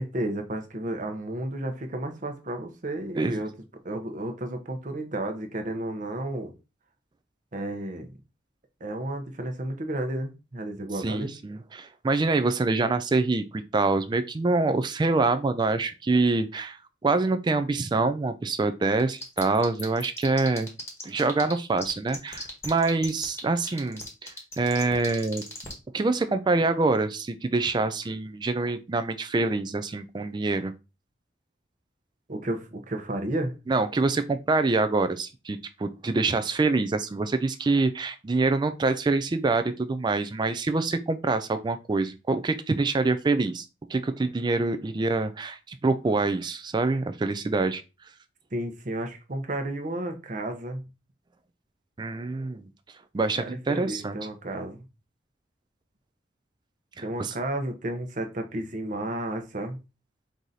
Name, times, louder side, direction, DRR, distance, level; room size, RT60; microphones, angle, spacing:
voice 1, 0.0-3.5 3.8-6.5 7.5-8.1 8.8-11.3 32.3-33.6 48.5-50.8 53.4-54.8 57.0-59.8, right 1 dB, 45° right, 0.8 m, -32 dB
voice 2, 11.0-20.7 21.0-25.4 25.9-30.7 33.7-47.8 52.0-52.7 53.1-54.2 57.0-57.3, right 3 dB, 25° right, 0.3 m, -26 dB
sound 1, 19.0-21.5 21.8-25.7, left 2 dB, 15° left, 1.2 m, -37 dB
4.7 x 2.7 x 3.8 m
head